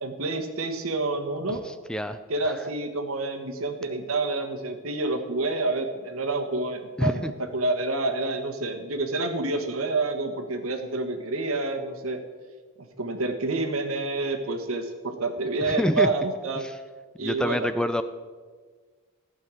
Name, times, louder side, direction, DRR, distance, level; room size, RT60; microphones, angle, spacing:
voice 1, 0.0-1.6 2.3-7.2 7.5-12.2 12.8-16.7 17.2-17.7, right 2 dB, 80° right, 5 dB, 1.4 m, -28 dB
voice 2, 1.6-2.2 2.4-2.5 7.0-7.3 15.7-16.1 16.6-16.7 17.2-18.0, left 1 dB, 5° left, 10 dB, 0.4 m, -27 dB
14.5 x 5.6 x 8.9 m, 1.5 s
head